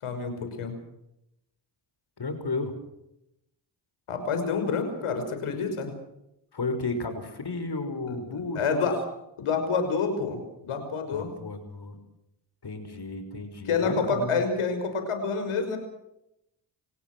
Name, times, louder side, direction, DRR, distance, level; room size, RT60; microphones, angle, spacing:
voice 1, 0.0-0.7 4.1-6.0 8.1-9.0 9.4-11.3 13.7-15.8, left 5 dB, 80° left, 7 dB, 5.8 m, -28 dB
voice 2, 2.2-2.7 6.5-8.9 11.1-12.0 12.6-14.4, left 3 dB, 50° left, 9 dB, 5.7 m, -33 dB
26.5 x 18.5 x 6.2 m, 0.82 s
supercardioid pair, 45°, 49 cm